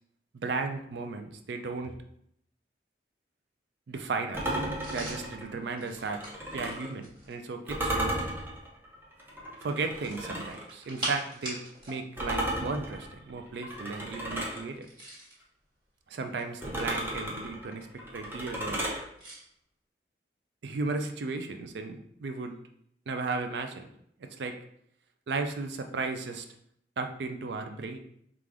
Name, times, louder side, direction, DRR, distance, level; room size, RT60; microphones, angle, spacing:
voice 1, 0.3-2.0 3.9-4.6 4.9-6.2 6.5-8.2 9.6-14.9 16.1-17.9 18.1-18.8 20.6-22.6 23.1-23.9 24.2-24.6 25.3-26.5 27.0-28.0, right 3 dB, 70° right, 5 dB, 0.4 m, -35 dB
sound 1, 4.3-6.9 7.7-10.7 12.2-14.6 16.6-19.0, right 1 dB, 15° right, 0.7 m, -34 dB
sound 2, 4.8-7.4 9.9-12.0 12.3-12.5 14.7-15.4 16.2-17.3 19.2-19.4, right 1 dB, 30° right, 1.6 m, -41 dB
4.8 x 2.4 x 3.5 m, 0.71 s
head